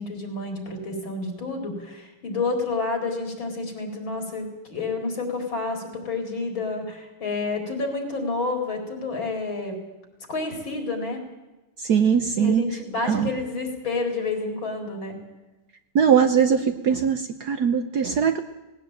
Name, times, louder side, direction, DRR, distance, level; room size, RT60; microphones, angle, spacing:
voice 1, 0.0-9.8 10.3-11.2 12.4-15.2, left 3 dB, 60° left, 3 dB, 5.2 m, -29 dB
voice 2, 11.8-12.6 13.0-13.3 15.9-18.4, right 7 dB, 55° right, 8 dB, 1.2 m, -21 dB
19.5 x 17.0 x 9.0 m, 1.1 s
omnidirectional pair, 2.4 m